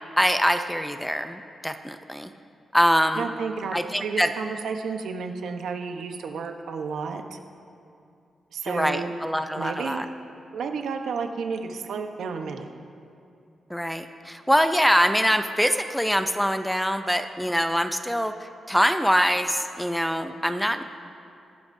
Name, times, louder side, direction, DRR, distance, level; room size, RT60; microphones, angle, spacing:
voice 1, 0.2-2.3 2.7-3.3 3.7-4.3 8.7-10.1 13.7-20.8, equal, ahead, 8 dB, 0.5 m, -24 dB
voice 2, 3.2-7.4 8.5-9.1 9.6-10.0 10.5-12.7, right 5 dB, 90° right, 5 dB, 0.9 m, -31 dB
22.5 x 11.5 x 2.7 m, 2.6 s
wide cardioid pair, 140°, 0 cm